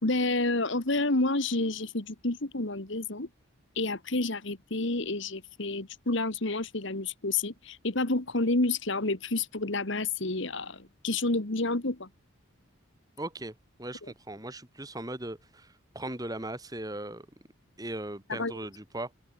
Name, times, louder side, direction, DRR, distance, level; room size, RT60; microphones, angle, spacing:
voice 1, 0.0-3.3 3.7-12.1 18.3-18.5, left 2 dB, 55° left, 1.7 m, -29 dB
voice 2, 13.2-17.3 17.8-19.1, right 1 dB, 15° right, 2.3 m, -38 dB
open air
head